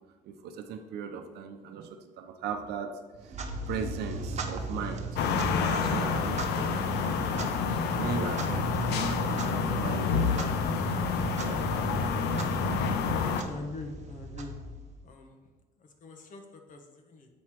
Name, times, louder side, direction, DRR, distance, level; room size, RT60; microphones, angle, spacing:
voice 1, 0.2-3.4 3.7-12.7 13.1-13.4, right 6 dB, 75° right, 5 dB, 0.7 m, -39 dB
Clock, 3.2-15.1, right 3 dB, 45° right, 0.8 m, -37 dB
sound 1, 4.3-12.8, left 1 dB, 20° left, 1.3 m, -43 dB
sound 2, 5.2-13.4, left 6 dB, 80° left, 0.6 m, -28 dB
voice 2, 13.4-14.5 15.0-15.4 15.8-17.3, left 3 dB, 50° left, 5 dB, 1.1 m, -43 dB
7.8 x 3.2 x 5.9 m, 1.2 s
cardioid pair, 110°, 17 cm